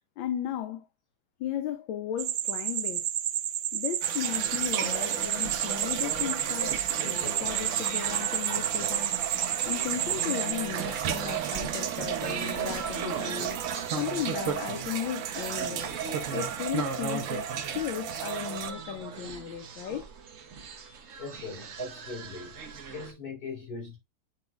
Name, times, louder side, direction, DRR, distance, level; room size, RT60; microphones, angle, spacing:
voice 1, 0.2-0.9 1.4-3.1 3.7-13.6 14.0-15.9 16.3-20.1 20.5-21.1, left 10 dB, 75° left, 1.4 m, -36 dB
sound 1, 2.2-10.5, right 11 dB, 90° right, 1.5 m, -30 dB
sound 2, 4.0-18.7, right 9 dB, 70° right, 1.4 m, -35 dB
sound 3, 4.3-23.1, right 5 dB, 50° right, 1.0 m, -38 dB
voice 2, 21.2-24.0, left 3 dB, 50° left, 4.5 m, -40 dB
9.3 x 4.7 x 2.3 m
omnidirectional pair, 2.3 m